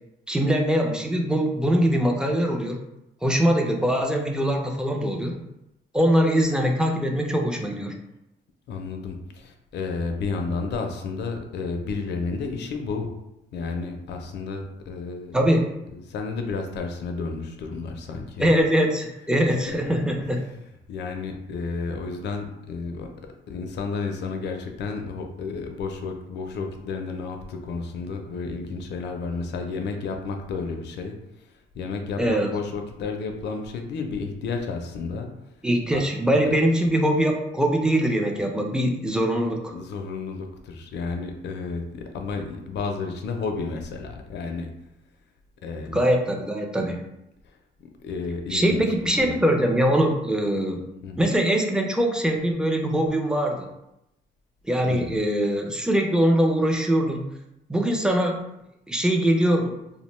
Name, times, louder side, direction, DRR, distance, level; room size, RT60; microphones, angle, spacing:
voice 1, 0.3-2.8 3.2-5.3 5.9-8.0 15.3-15.7 18.4-20.4 32.2-32.5 35.6-39.7 45.9-47.0 48.5-50.8 51.2-53.7 54.7-57.3 57.7-58.4 58.9-59.8, equal, 5° right, 2 dB, 0.4 m, -22 dB
voice 2, 8.7-13.1 13.5-15.4 15.9-18.4 19.7-20.0 20.2-20.4 20.9-23.1 23.5-31.1 31.4-31.5 31.7-35.3 35.9-36.0 39.7-44.7 45.6-46.0 47.4-48.8 49.2-49.4 51.0-51.3 54.8-55.1, left 4 dB, 60° left, 4 dB, 0.4 m, -32 dB
2.5 x 2.1 x 3.0 m, 0.87 s
cardioid pair, 90°, 20 cm